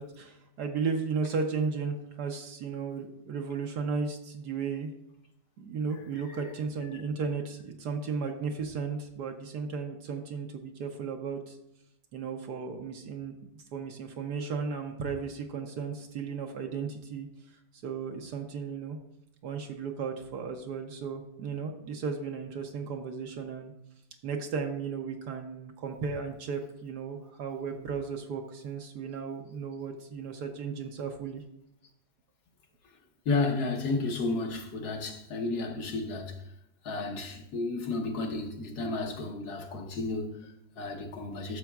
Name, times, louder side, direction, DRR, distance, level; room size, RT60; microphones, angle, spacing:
voice 1, 0.0-4.9 5.6-11.6 12.1-17.3 17.8-19.0 19.4-23.7 24.2-31.4, right 5 dB, 75° right, 1.3 m, -35 dB
voice 2, 33.2-36.4 36.8-41.6, left 3 dB, 65° left, 1.5 m, -32 dB
11.5 x 6.8 x 2.3 m
omnidirectional pair, 1.8 m